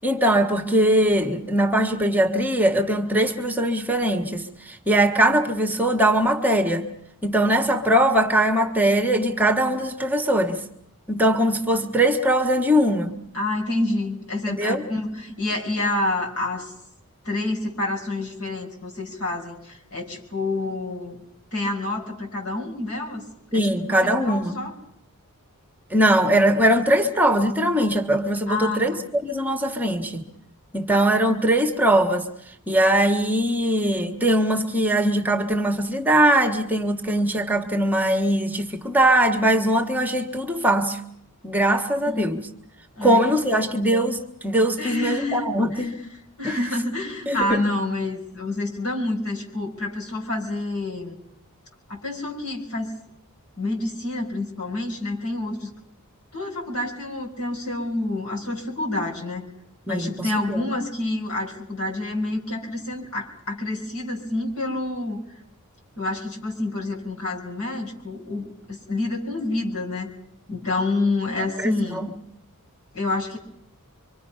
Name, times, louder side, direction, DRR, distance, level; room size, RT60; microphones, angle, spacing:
voice 1, 0.0-6.9 7.2-10.6 11.1-13.1 14.5-14.8 23.5-24.5 25.9-30.2 30.7-32.3 32.7-41.0 41.4-42.4 43.0-46.0 46.4-46.6 47.3-47.8 59.9-60.1 60.5-60.6 71.6-71.7, right 1 dB, 10° right, 1.5 m, -21 dB
voice 2, 13.3-16.7 17.2-21.2 21.5-23.2 23.5-23.7 24.0-24.7 28.5-29.1 42.1-42.3 43.0-43.7 44.8-45.8 46.4-51.1 51.9-52.9 53.6-55.7 56.3-59.5 59.9-65.2 66.0-70.1 70.5-72.1 72.9-73.4, left 2 dB, 75° left, 5.3 m, -28 dB
26.0 x 24.5 x 5.7 m
head